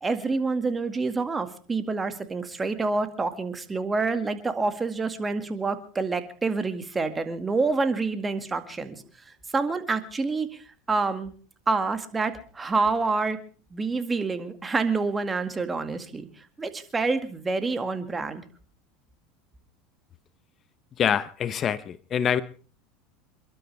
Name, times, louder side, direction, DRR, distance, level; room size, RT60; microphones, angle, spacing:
voice 1, 0.0-9.0 9.5-11.3 11.7-13.4 13.7-18.4, right 3 dB, 20° right, 2.1 m, -27 dB
voice 2, 21.0-22.4, left 8 dB, 35° left, 0.8 m, -25 dB
28.5 x 12.0 x 3.4 m
supercardioid pair, 110°, 0 cm